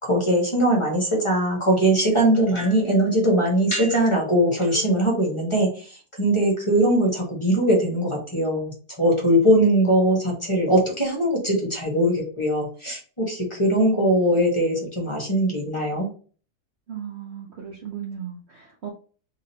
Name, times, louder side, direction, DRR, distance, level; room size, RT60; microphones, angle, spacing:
voice 1, 0.0-5.9 6.2-16.1, right 1 dB, 20° left, -2 dB, 1.2 m, -21 dB
voice 2, 16.9-18.9, right 9 dB, 50° right, -1 dB, 0.9 m, -36 dB
3.8 x 3.8 x 2.8 m, 0.40 s
omnidirectional pair, 1.7 m